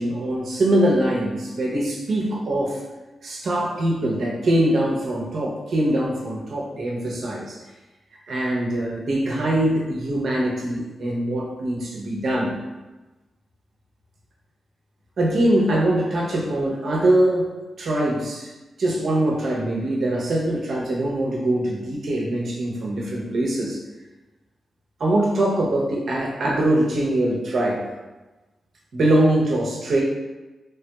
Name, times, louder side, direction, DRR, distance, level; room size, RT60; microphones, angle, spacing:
voice 1, 0.0-2.8 3.2-7.6 8.3-12.6 15.2-17.5 17.8-18.5 18.8-23.8 25.0-27.8 28.9-30.0, right 1 dB, 70° right, -3 dB, 0.7 m, -22 dB
3.4 x 2.8 x 2.2 m, 1.1 s
cardioid pair, 70°, 0 cm